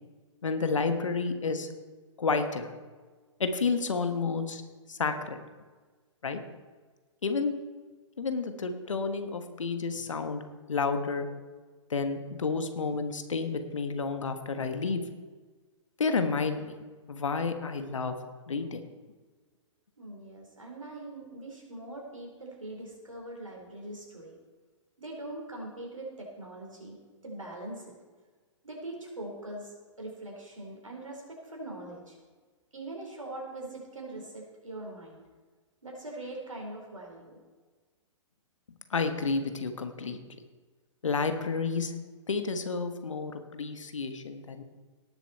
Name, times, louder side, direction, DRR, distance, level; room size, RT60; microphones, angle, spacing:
voice 1, 0.4-1.7 2.2-2.7 3.4-4.6 4.9-5.4 6.2-6.4 7.2-7.5 8.2-10.4 10.7-11.3 11.9-15.0 16.0-16.8 17.1-18.2 18.5-18.8 38.9-40.2 41.0-41.9 42.3-44.6, left 4 dB, 75° left, 8 dB, 1.4 m, -30 dB
voice 2, 20.0-24.4 25.0-27.0 27.2-28.0 28.6-32.2 32.7-35.2 35.8-37.4, right 2 dB, 85° right, -1 dB, 4.4 m, -42 dB
18.0 x 7.3 x 4.4 m, 1.4 s
figure-of-eight pair, 120°, 16 cm